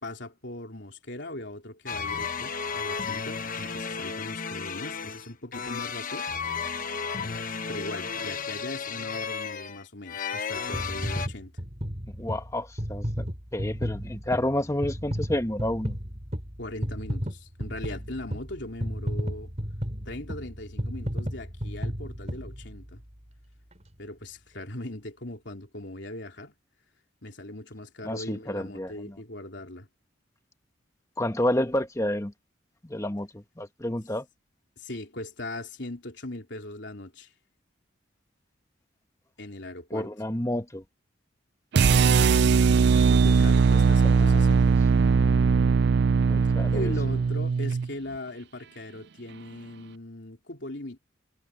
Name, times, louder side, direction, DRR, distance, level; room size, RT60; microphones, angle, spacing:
voice 1, 0.0-6.3 7.3-11.5 16.6-19.5 20.1-23.0 24.0-26.5 27.2-29.9 34.8-37.3 39.4-40.1 41.9-42.5 43.0-44.8 46.7-51.0, left 1 dB, 65° left, 3.8 m, -39 dB
sound 1, 1.9-11.3, left 5 dB, 45° left, 1.1 m, -33 dB
sound 2, 10.7-23.1 23.7-23.8, equal, 35° right, 5.3 m, -34 dB
voice 2, 12.1-13.3 13.5-16.0 28.0-29.2 31.2-32.3 32.8-34.3 39.9-40.8 43.7-44.3 46.3-46.9, left 1 dB, 15° left, 1.4 m, -30 dB
sound 3, 41.7-47.9, right 5 dB, 60° right, 0.4 m, -20 dB
head